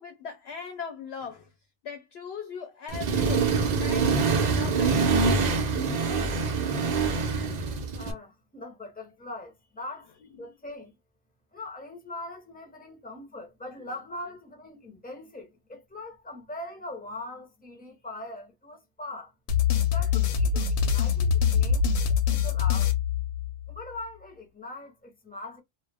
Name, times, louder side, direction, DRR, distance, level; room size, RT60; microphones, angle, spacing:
voice 1, 0.0-1.5 1.8-3.5 3.7-6.7 10.4-10.5 13.8-13.9, left 6 dB, 65° left, 0.8 m, -40 dB
Accelerating revving vroom, 2.9-8.1, right 4 dB, 80° right, 0.4 m, -25 dB
voice 2, 7.9-10.1 10.4-10.9 11.5-19.3 19.9-21.9 22.3-22.9 23.7-25.6, left 2 dB, 10° left, 0.5 m, -41 dB
sound 1, 19.5-23.8, left 7 dB, 85° left, 1.0 m, -24 dB
2.3 x 2.1 x 3.3 m
omnidirectional pair, 1.3 m